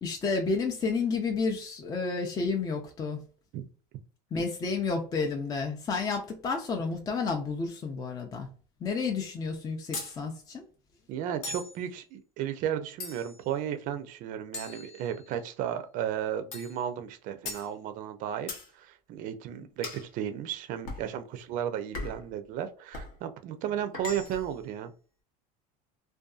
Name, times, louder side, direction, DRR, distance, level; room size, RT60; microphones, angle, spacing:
voice 1, 0.0-3.2 4.3-8.5 8.8-10.7, left 4 dB, 20° left, 0.4 m, -31 dB
sound 1, 9.9-10.2 11.4-11.8 13.0-13.5 14.5-15.4 16.5-16.8 17.5-17.7 18.5-18.7 19.8-20.1 20.9-21.1 21.9-22.3 22.9-23.2 23.9-24.5, left 3 dB, 85° left, 0.9 m, -39 dB
voice 2, 11.1-24.9, right 10 dB, 50° right, 0.4 m, -34 dB
2.6 x 2.3 x 2.3 m
supercardioid pair, 130°, 18 cm